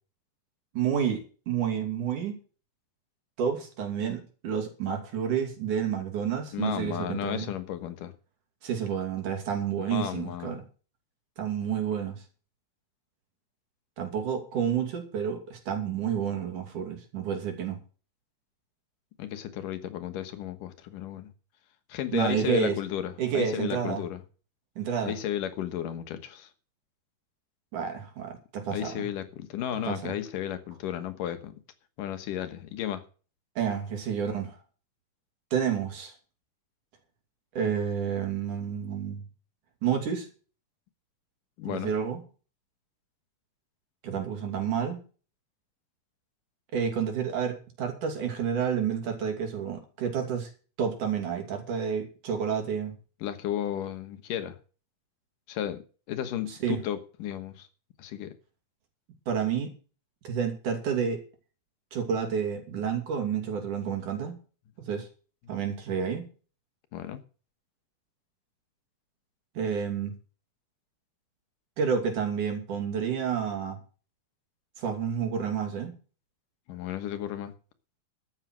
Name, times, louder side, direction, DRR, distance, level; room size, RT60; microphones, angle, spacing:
voice 1, 0.7-2.4 3.4-7.5 8.6-10.6 11.4-12.2 14.0-17.8 22.1-22.8 23.2-24.0 24.8-25.2 27.7-29.1 29.8-30.1 33.6-34.6 35.5-36.1 37.5-39.2 39.8-40.3 41.6-42.2 44.0-45.0 46.7-50.5 50.8-52.9 56.5-56.8 59.3-59.7 60.2-61.2 61.9-64.3 64.8-65.1 65.5-66.2 69.6-70.1 71.8-73.8 74.8-75.9, right 7 dB, 70° right, 4.2 m, -30 dB
voice 2, 6.5-8.1 9.9-10.5 19.2-21.3 21.9-24.2 25.0-26.5 28.7-31.5 32.0-33.0 41.6-41.9 53.2-54.6 55.5-55.8 56.1-57.7 58.0-58.3 66.9-67.2 76.7-77.5, left 11 dB, 85° left, 2.9 m, -33 dB
12.0 x 8.9 x 6.4 m
omnidirectional pair, 3.7 m